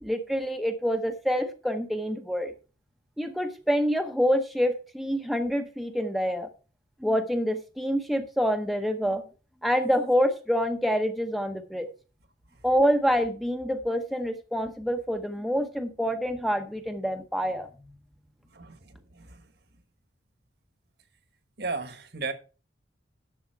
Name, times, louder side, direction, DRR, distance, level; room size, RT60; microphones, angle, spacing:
voice 1, 0.0-2.5 3.2-6.5 7.0-9.2 9.6-11.9 12.6-17.7, equal, ahead, 0.8 m, -26 dB
voice 2, 18.5-19.5 21.6-22.3, right 4 dB, 60° right, 1.4 m, -35 dB
11.0 x 7.0 x 4.6 m
head